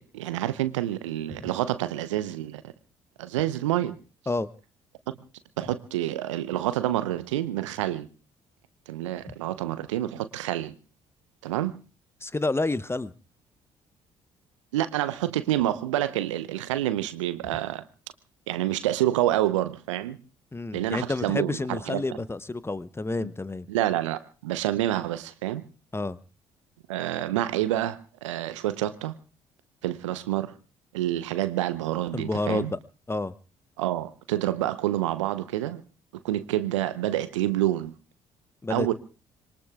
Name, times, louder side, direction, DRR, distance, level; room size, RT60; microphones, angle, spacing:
voice 1, 0.0-2.6 3.2-4.0 5.1-5.2 5.6-8.1 8.9-10.7 11.4-11.7 14.7-17.8 18.5-20.2 20.7-22.0 23.7-25.6 26.9-29.1 29.8-30.5 30.9-32.7 33.8-35.8 36.2-37.9 38.7-38.9, right 13 dB, 75° right, 0.9 m, -28 dB
voice 2, 12.2-13.1 20.5-23.7 25.9-26.2 32.1-32.8 33.1-33.3 38.6-38.9, left 2 dB, 15° left, 0.8 m, -29 dB
26.0 x 22.5 x 2.4 m
figure-of-eight pair, 45°, 16 cm